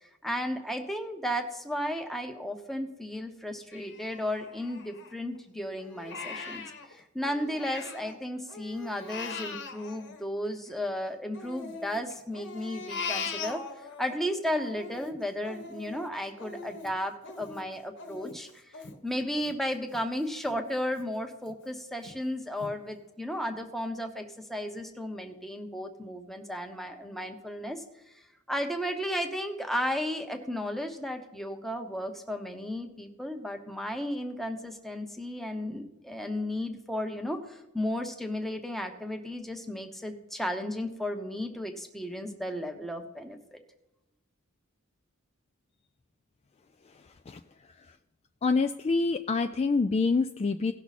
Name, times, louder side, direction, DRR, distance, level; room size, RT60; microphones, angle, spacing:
voice 1, 0.0-6.6 6.9-13.6 14.0-27.8 28.5-43.6, equal, ahead, 4 dB, 0.9 m, -34 dB
Crying sobbing, 3.7-5.4 5.8-8.2 8.5-10.9 11.3-14.2 14.5-20.0 20.4-20.6 21.0-21.5 22.0-22.1 22.6-22.7, left 4 dB, 55° left, 1.3 m, -41 dB
voice 2, 46.9-47.4 47.8-48.0 48.4-50.7, left 4 dB, 30° left, 7 dB, 0.3 m, -27 dB
17.5 x 6.0 x 4.2 m, 0.91 s
head